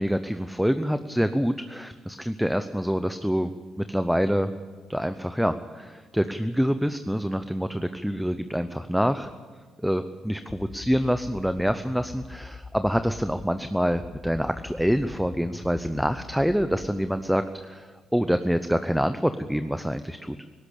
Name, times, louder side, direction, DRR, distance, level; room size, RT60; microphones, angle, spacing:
voice 1, 0.0-3.5 3.8-4.5 4.9-9.3 9.8-20.4, equal, ahead, 10 dB, 0.7 m, -26 dB
sound 1, 10.5-13.5 13.9-16.9, left 4 dB, 35° left, 1.1 m, -43 dB
18.5 x 16.5 x 8.6 m, 1.5 s
cardioid pair, 90°, 0 cm